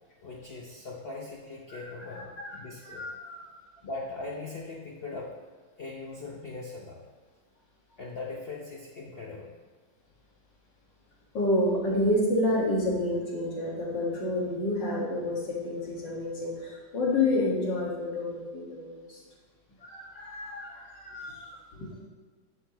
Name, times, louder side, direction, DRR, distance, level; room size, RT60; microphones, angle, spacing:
voice 1, 0.2-3.1 3.8-5.3 5.8-7.0 8.0-9.5, left 3 dB, 90° left, -2 dB, 0.5 m, -40 dB
voice 2, 2.1-2.6 2.8-3.5 11.3-19.2 19.8-21.9, left 1 dB, 55° left, -3 dB, 2.4 m, -29 dB
11.5 x 7.0 x 3.0 m, 1.4 s
omnidirectional pair, 2.4 m